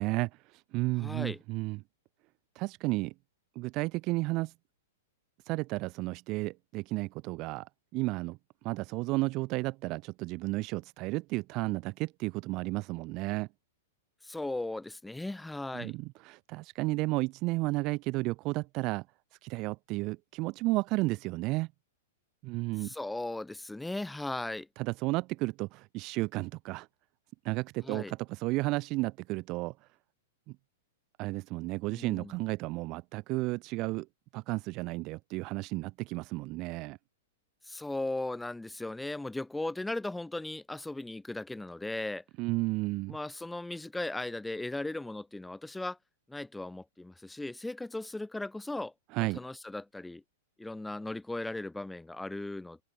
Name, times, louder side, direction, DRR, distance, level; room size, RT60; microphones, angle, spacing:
voice 1, 0.0-1.8 2.5-3.1 3.5-4.5 5.5-8.4 8.6-13.5 15.7-19.0 19.4-21.7 22.4-22.9 24.8-26.9 27.4-29.7 31.2-34.1 34.3-37.0 42.4-43.2 49.1-49.4, right 22 dB, 40° right, 1.3 m, -33 dB
voice 2, 1.0-1.4 14.2-15.9 22.8-24.7 27.8-28.1 31.9-32.4 37.6-42.2 43.1-46.0 46.3-50.2 50.6-52.8, left 2 dB, 5° left, 6.2 m, -37 dB
hypercardioid pair, 120°, 0 cm